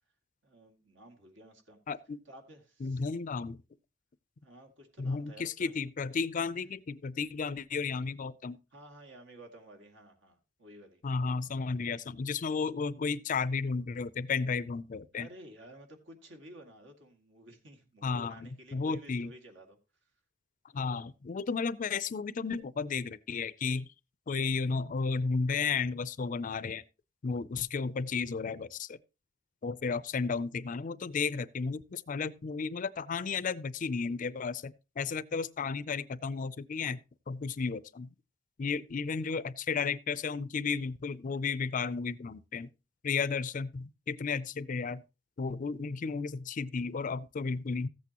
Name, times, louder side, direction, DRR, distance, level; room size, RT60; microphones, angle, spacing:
voice 1, 0.4-1.8 2.3-3.0 4.4-5.7 6.6-6.7 8.7-11.0 15.1-19.8 20.7-21.1, right 1 dB, 75° right, 2.2 m, -53 dB
voice 2, 1.9-2.2 2.8-3.6 5.0-8.6 11.0-15.3 18.0-19.3 20.7-23.9 24.3-26.8 27.2-29.0 29.6-37.0 37.3-38.1 38.6-42.7 43.0-45.0 45.4-47.9, left 5 dB, 45° left, 0.4 m, -33 dB
14.5 x 8.3 x 2.9 m
head